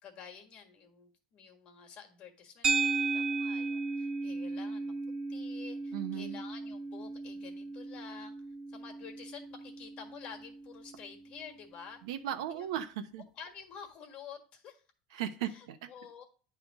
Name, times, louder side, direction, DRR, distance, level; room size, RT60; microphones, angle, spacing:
voice 1, 0.0-4.9 5.3-8.4 8.7-12.0 12.5-12.7 13.4-14.8 15.5-16.2, left 7 dB, 40° left, 4 dB, 1.6 m, -50 dB
sound 1, 2.6-11.1, right 4 dB, 25° right, 0.9 m, -35 dB
voice 2, 5.9-6.4 12.0-13.2 15.1-15.8, right 10 dB, 85° right, 9 dB, 0.9 m, -36 dB
9.7 x 3.4 x 4.7 m, 0.40 s
supercardioid pair, 155°, 3 cm